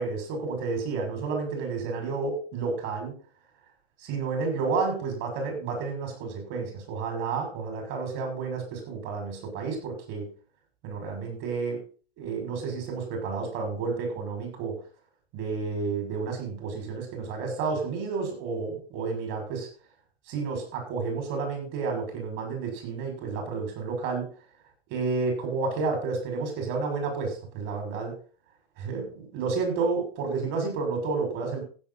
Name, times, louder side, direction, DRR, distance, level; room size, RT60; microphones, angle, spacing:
voice 1, 0.0-3.1 4.0-10.3 10.8-11.8 12.2-14.8 15.3-19.7 20.3-24.3 24.9-28.2 28.8-31.6, right 4 dB, 40° right, 4 dB, 6.6 m, -31 dB
15.5 x 8.5 x 4.3 m, 0.38 s
hypercardioid pair, 110°, 32 cm